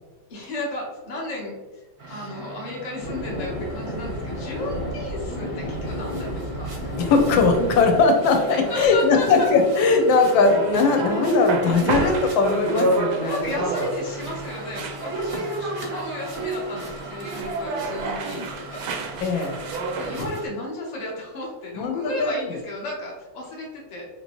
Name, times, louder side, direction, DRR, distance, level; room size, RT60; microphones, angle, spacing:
voice 1, 0.3-1.6 2.1-6.7 8.7-9.5 13.2-19.0 20.0-24.1, left 1 dB, 35° left, -3 dB, 0.6 m, -33 dB
sound 1, 2.0-20.5, right 3 dB, 50° right, 0.7 m, -40 dB
sound 2, 3.0-8.0, equal, 60° left, 1.3 m, -31 dB
voice 2, 7.0-13.6 19.2-19.6 21.8-22.6, left 4 dB, 85° left, 4 dB, 1.4 m, -20 dB
sound 3, 7.1-20.3, right 3 dB, 70° right, 1.1 m, -30 dB
4.0 x 2.9 x 2.9 m, 1.1 s
omnidirectional pair, 2.1 m